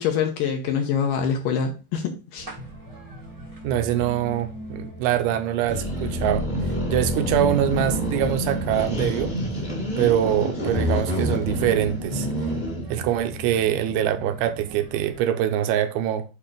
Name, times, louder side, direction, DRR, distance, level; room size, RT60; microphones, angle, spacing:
voice 1, 0.0-2.5, left 7 dB, 75° left, 2.2 m, -25 dB
sound 1, 2.4-15.2, right 1 dB, 65° right, 0.3 m, -39 dB
voice 2, 3.6-6.5 6.9-9.3 10.0-12.3 12.9-16.2, right 11 dB, 85° right, 2.6 m, -24 dB
sound 2, 5.7-12.9, equal, 20° left, 1.2 m, -27 dB
8.5 x 2.9 x 5.0 m
omnidirectional pair, 4.5 m